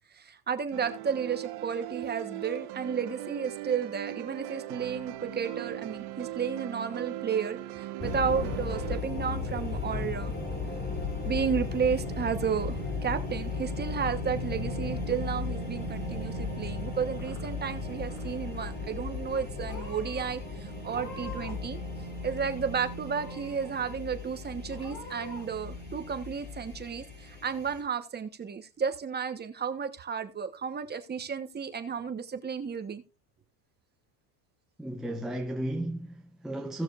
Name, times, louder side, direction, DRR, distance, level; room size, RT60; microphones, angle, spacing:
voice 1, 0.1-10.3 11.2-21.8 22.2-33.0, right 6 dB, 20° right, 1.1 m, -33 dB
sound 1, 0.7-9.0, right 15 dB, 55° right, 1.3 m, -39 dB
sound 2, 8.0-27.8, left 3 dB, 20° left, 2.8 m, -36 dB
Purr / Meow, 16.9-17.7 18.0-18.6 19.3-19.4 19.7-20.3 20.8-21.7 22.0-22.7 23.1-23.7 24.1-24.2 24.7-25.4, left 2 dB, 40° left, 4.9 m, -45 dB
voice 2, 34.8-36.8, right 1 dB, ahead, 0.7 m, -34 dB
17.0 x 6.4 x 2.5 m
supercardioid pair, 125°, 47 cm